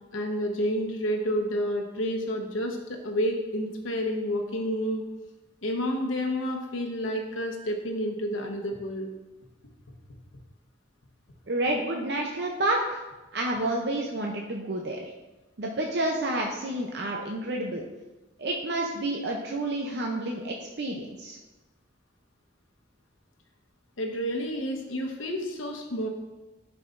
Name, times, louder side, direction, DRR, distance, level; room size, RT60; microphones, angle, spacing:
voice 1, 0.1-5.0 5.6-9.1 24.0-26.1, equal, 90° left, 2 dB, 1.0 m, -30 dB
voice 2, 11.5-13.0 13.3-15.1 15.6-17.8 18.4-21.4, right 1 dB, 55° right, 0 dB, 0.6 m, -29 dB
10.5 x 4.8 x 2.5 m, 1.1 s
head